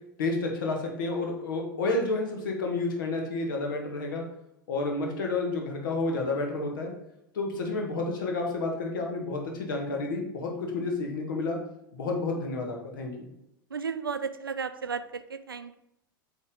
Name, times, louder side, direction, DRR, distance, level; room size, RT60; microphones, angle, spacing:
voice 1, 0.2-4.2 4.7-6.9 7.3-11.6 11.9-13.3, left 3 dB, 65° left, 1 dB, 1.5 m, -30 dB
voice 2, 13.7-15.7, right 5 dB, 85° right, 12 dB, 0.4 m, -34 dB
8.2 x 3.5 x 3.7 m, 0.82 s
figure-of-eight pair, 85°, 12 cm